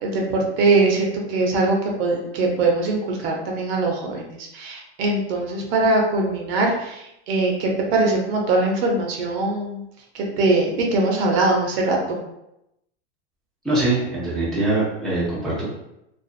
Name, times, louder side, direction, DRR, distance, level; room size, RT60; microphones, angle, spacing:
voice 1, 0.0-9.8 10.1-12.2, right 2 dB, 55° right, 0 dB, 0.7 m, -22 dB
voice 2, 13.6-15.7, right 2 dB, ahead, -9 dB, 0.6 m, -23 dB
2.5 x 2.4 x 2.4 m, 0.85 s
supercardioid pair, 135°, 37 cm